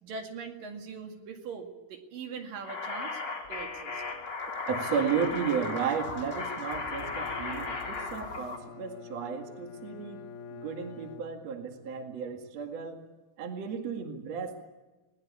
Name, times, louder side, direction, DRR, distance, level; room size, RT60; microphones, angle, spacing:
voice 1, 0.0-3.2 3.5-4.0, right 5 dB, 65° right, 4 dB, 3.8 m, -41 dB
sound 1, 2.6-8.6, left 4 dB, 35° left, 4.1 m, -36 dB
sound 2, 3.4-8.4, right 1 dB, 15° right, 2.3 m, -52 dB
voice 2, 4.7-10.2 10.5-13.0 13.4-14.6, right 6 dB, 50° right, 4 dB, 2.9 m, -33 dB
Bowed string instrument, 6.4-11.9, left 6 dB, 80° left, 2.9 m, -47 dB
21.0 x 20.0 x 8.5 m, 1.1 s
omnidirectional pair, 4.2 m